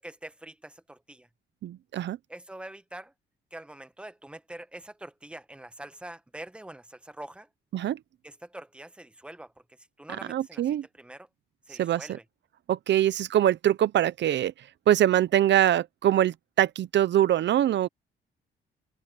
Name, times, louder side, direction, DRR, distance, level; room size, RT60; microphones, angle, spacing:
voice 1, 0.0-1.3 2.3-3.1 3.5-7.5 8.2-9.5 10.0-10.6 11.0-11.3 11.7-12.2, right 1 dB, 5° right, 1.1 m, -44 dB
voice 2, 1.6-2.2 7.7-8.0 10.3-10.9 11.8-12.1 12.7-17.9, right 11 dB, 65° right, 0.7 m, -23 dB
cardioid pair, 90°, 20 cm